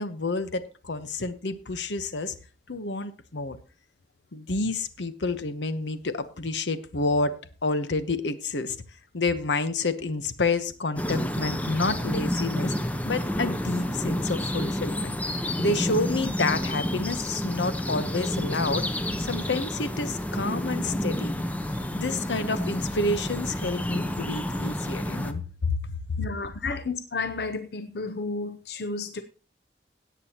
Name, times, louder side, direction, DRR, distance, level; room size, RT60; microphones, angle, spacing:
voice 1, 0.0-2.3 2.7-3.6 4.3-7.3 7.6-8.8 9.1-12.7 13.0-15.1 15.6-18.8 19.2-21.3 21.9-26.3 26.6-26.8, left 3 dB, 90° left, 0.9 m, -29 dB
sound 1, 11.0-25.3, left 1 dB, 10° left, 0.6 m, -29 dB
voice 2, 26.2-29.2, left 3 dB, 65° left, 0.7 m, -32 dB
17.0 x 8.4 x 2.9 m
head